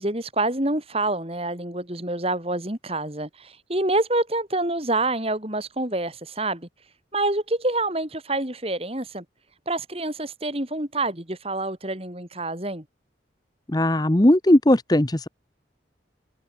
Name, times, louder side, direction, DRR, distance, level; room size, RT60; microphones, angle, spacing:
voice 1, 0.0-6.7 7.1-9.2 9.7-12.8, right 2 dB, 30° right, 3.3 m, -27 dB
voice 2, 13.7-15.3, left 1 dB, 20° left, 0.9 m, -18 dB
head